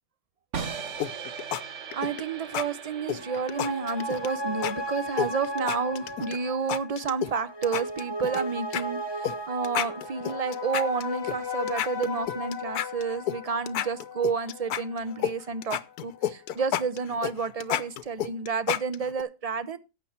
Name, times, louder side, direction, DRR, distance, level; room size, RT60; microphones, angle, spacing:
sound 1, 0.5-6.5, right 6 dB, 55° right, 1.5 m, -40 dB
sound 2, 1.0-1.6 1.9-2.2 2.5-2.7 3.1-4.3 4.6-4.7 5.2-6.4 6.7-7.3 7.6-8.4 8.7-8.8 9.2-9.4 9.6-11.4 11.7-13.4 13.7-15.3 15.6-19.2, left 11 dB, 85° left, 1.2 m, -30 dB
voice 1, 1.9-19.8, right 5 dB, 40° right, 0.5 m, -30 dB
sound 3, 2.9-15.8 16.1-16.2, left 1 dB, 20° left, 0.8 m, -36 dB
11.5 x 8.0 x 4.3 m
omnidirectional pair, 1.6 m